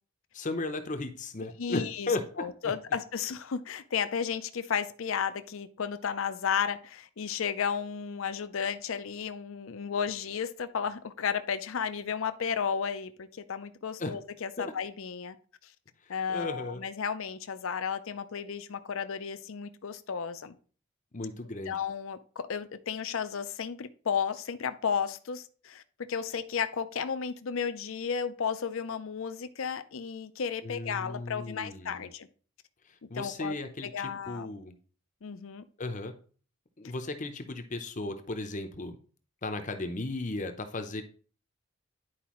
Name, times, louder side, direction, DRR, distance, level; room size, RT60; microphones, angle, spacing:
voice 1, 0.3-2.7 14.0-14.1 14.6-14.7 16.3-16.8 21.1-21.8 30.6-32.1 32.9-34.7 35.8-36.1 36.8-39.0 39.4-41.0, left 2 dB, 35° left, 0.7 m, -35 dB
voice 2, 1.4-2.1 2.4-15.3 16.1-20.5 21.7-25.8 26.1-32.3 33.1-33.6 33.8-34.5 35.2-35.6, left 7 dB, 70° left, 0.5 m, -33 dB
10.0 x 4.7 x 3.0 m
head